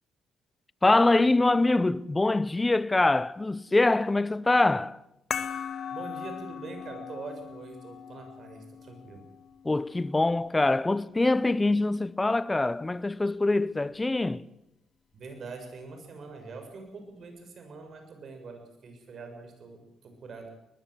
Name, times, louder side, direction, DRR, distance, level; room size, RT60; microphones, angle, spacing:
voice 1, 0.8-5.0 9.6-14.5, left 2 dB, 15° left, 0.7 m, -24 dB
sound 1, 5.3-10.4, left 7 dB, 50° left, 1.8 m, -39 dB
voice 2, 5.9-9.2 15.1-20.5, right 4 dB, 55° right, 6.7 m, -44 dB
21.5 x 21.0 x 7.9 m
cardioid pair, 90°, 0 cm